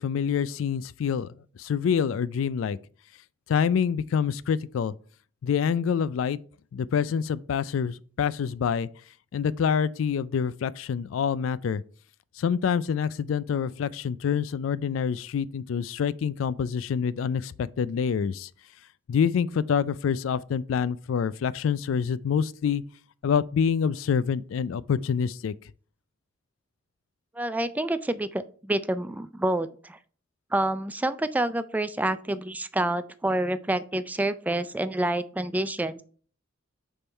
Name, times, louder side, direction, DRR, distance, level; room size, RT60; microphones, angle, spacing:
voice 1, 0.0-2.8 3.5-4.9 5.4-6.4 6.7-8.9 9.3-11.8 12.4-18.5 19.1-22.8 23.2-25.5, left 7 dB, 80° left, 0.3 m, -26 dB
voice 2, 27.4-30.0 30.5-36.0, right 1 dB, 10° right, 0.3 m, -28 dB
6.9 x 3.7 x 4.4 m
head